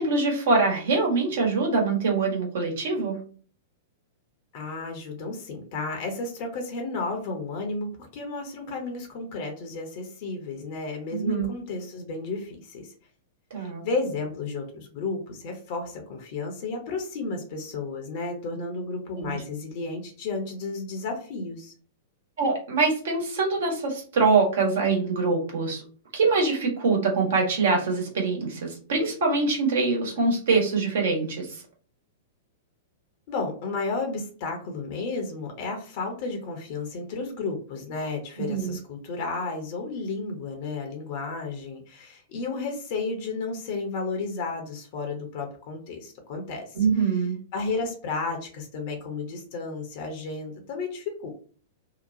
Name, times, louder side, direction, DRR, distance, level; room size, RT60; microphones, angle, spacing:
voice 1, 0.0-3.2 11.1-11.5 13.5-13.8 19.2-19.4 22.4-25.8 26.1-31.5 38.4-38.8 46.8-47.4, right 4 dB, 65° right, 0 dB, 1.2 m, -24 dB
voice 2, 4.5-12.9 13.6-21.7 33.3-46.8 47.5-51.3, left 3 dB, 50° left, 3 dB, 0.8 m, -32 dB
2.8 x 2.2 x 2.6 m, 0.42 s
figure-of-eight pair, 100°, 0 cm